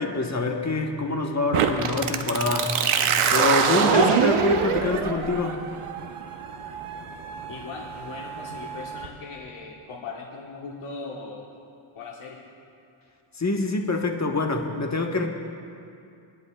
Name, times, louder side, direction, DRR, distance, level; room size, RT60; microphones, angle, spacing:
voice 1, 0.0-2.8 3.3-5.6 13.4-15.3, left 2 dB, 35° left, 2 dB, 1.2 m, -25 dB
sound 1, 1.5-9.1, right 6 dB, 85° right, 0.9 m, -25 dB
voice 2, 7.5-11.5 11.9-12.4, left 4 dB, 90° left, -3 dB, 1.3 m, -39 dB
25.0 x 10.5 x 2.3 m, 2.6 s
cardioid pair, 75°, 49 cm